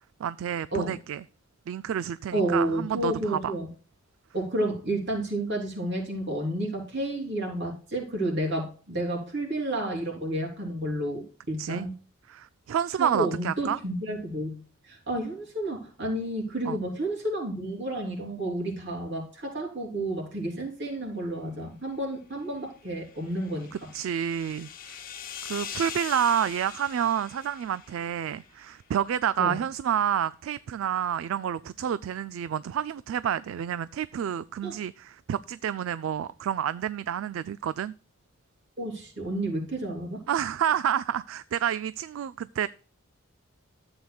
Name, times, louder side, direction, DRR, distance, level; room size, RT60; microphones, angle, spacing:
voice 1, 0.2-1.2 1.7-3.5 11.6-11.9 12.3-13.8 16.7-16.8 23.9-25.0 25.4-37.9 40.3-42.7, right 9 dB, 70° right, 0.3 m, -29 dB
voice 2, 2.3-3.7 4.3-11.9 13.0-14.6 14.9-23.7 29.4-29.6 34.6-34.8 38.8-40.2, right 1 dB, 55° right, 3.4 m, -31 dB
sound 1, 22.9-28.5, left 8 dB, 45° left, 1.1 m, -42 dB
13.5 x 8.0 x 2.3 m
head